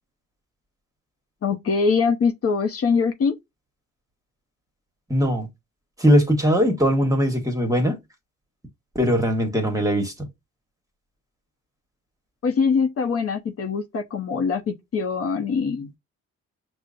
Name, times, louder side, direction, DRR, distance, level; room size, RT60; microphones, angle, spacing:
voice 1, 1.4-3.3 12.4-15.9, left 5 dB, 50° left, 0.7 m, -23 dB
voice 2, 5.1-5.5 6.0-8.0 8.9-10.3, equal, 10° right, 1.1 m, -20 dB
6.0 x 2.1 x 2.5 m
cardioid pair, 90°, 30 cm